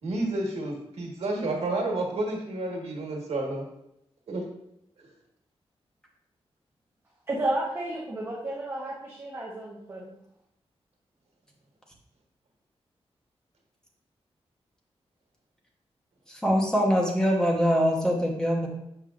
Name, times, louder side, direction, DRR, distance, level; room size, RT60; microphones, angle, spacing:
voice 1, 0.0-3.7 4.3-4.4 5.0-5.1, right 2 dB, 80° right, -1 dB, 1.6 m, -30 dB
voice 2, 7.3-10.1, right 1 dB, 20° right, -5 dB, 0.8 m, -32 dB
voice 3, 16.4-18.7, equal, 5° left, -1 dB, 1.0 m, -23 dB
7.5 x 5.4 x 2.5 m, 0.78 s
wide cardioid pair, 170°, 11 cm